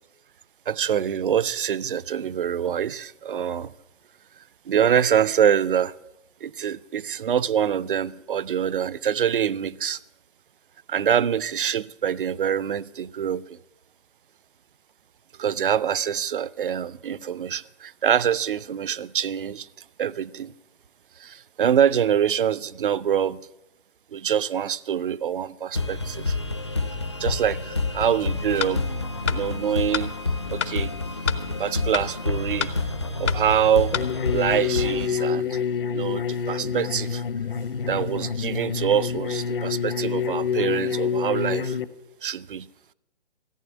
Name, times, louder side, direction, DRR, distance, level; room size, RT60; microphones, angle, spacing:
voice 1, 0.7-3.7 4.7-5.9 6.4-10.0 10.9-13.6 15.4-19.7 20.0-20.5 21.2-23.5 24.1-26.4 27.2-28.9 29.3-30.1 30.5-30.9 31.6-32.7 33.2-34.0 34.3-35.6 35.9-37.2 37.8-41.8 42.2-42.7, right 8 dB, 50° right, 0.4 m, -25 dB
sound 1, 25.7-35.1, left 3 dB, 25° left, 0.4 m, -28 dB
sound 2, 28.6-28.7 29.3-29.4 29.9-30.1 30.6-30.7 31.3-31.4 31.9-32.1 32.6-32.7 33.3-33.4 33.9-34.1, left 7 dB, 80° left, 1.1 m, -27 dB
sound 3, 33.9-41.8, left 6 dB, 50° left, 0.7 m, -27 dB
14.5 x 9.3 x 7.2 m
hypercardioid pair, 170°, 34 cm